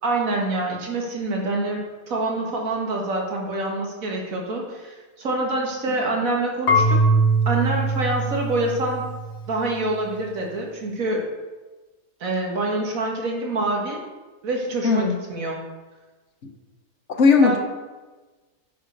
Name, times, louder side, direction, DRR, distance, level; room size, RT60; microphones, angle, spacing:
voice 1, 0.0-7.0 7.5-9.0 9.5-11.2 12.2-14.0 14.4-15.6 17.4-17.6, right 2 dB, 60° right, 0 dB, 1.8 m, -26 dB
Marimba xylophone / Wood, 6.7-9.5, right 2 dB, 80° left, 1.5 m, -21 dB
voice 2, 14.8-15.2 17.1-17.6, left 4 dB, 50° left, 4 dB, 1.0 m, -17 dB
9.0 x 5.0 x 5.2 m, 1.3 s
omnidirectional pair, 1.7 m